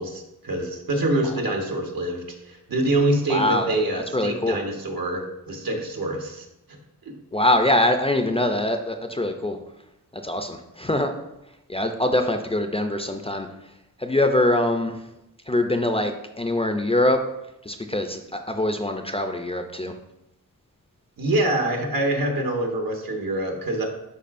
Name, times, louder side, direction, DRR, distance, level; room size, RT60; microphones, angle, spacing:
voice 1, 0.0-6.8 7.0-7.1 21.2-23.9, right 1 dB, 75° right, 2 dB, 1.2 m, -25 dB
voice 2, 3.3-4.6 7.3-9.6 10.1-11.1 11.7-13.5 14.0-15.0 15.5-17.2 17.6-19.9, left 1 dB, 15° left, 5 dB, 0.4 m, -23 dB
11.0 x 4.1 x 2.5 m, 0.87 s
wide cardioid pair, 130°, 35 cm